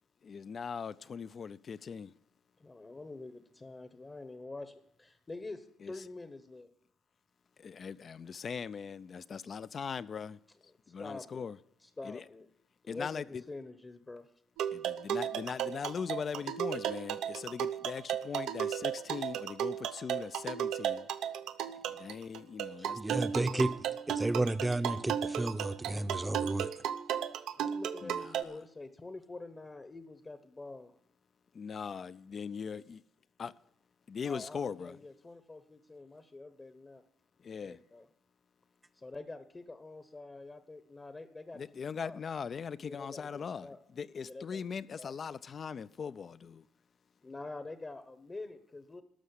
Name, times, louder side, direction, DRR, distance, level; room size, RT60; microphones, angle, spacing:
voice 1, 0.2-2.2 5.8-6.0 7.6-10.4 10.9-11.6 12.0-12.3 12.9-13.4 14.7-21.1 21.9-23.7 28.0-28.6 31.5-33.0 33.4-33.5 34.1-35.0 37.4-37.8 41.5-46.7, left 6 dB, 50° left, 0.5 m, -40 dB
voice 2, 2.6-6.7 11.0-11.5 11.8-12.5 12.8-14.3 27.6-30.9 34.2-37.0 37.6-38.1 38.9-41.7 42.0-42.2 42.8-43.3 43.6-43.8 44.2-45.1 47.2-49.0, left 2 dB, 25° left, 0.9 m, -46 dB
sound 1, 14.6-28.4, right 9 dB, 85° right, 0.7 m, -35 dB
voice 3, 22.9-23.7 24.1-26.7, right 2 dB, 15° right, 0.7 m, -32 dB
12.5 x 6.3 x 9.7 m
cardioid pair, 90°, 0 cm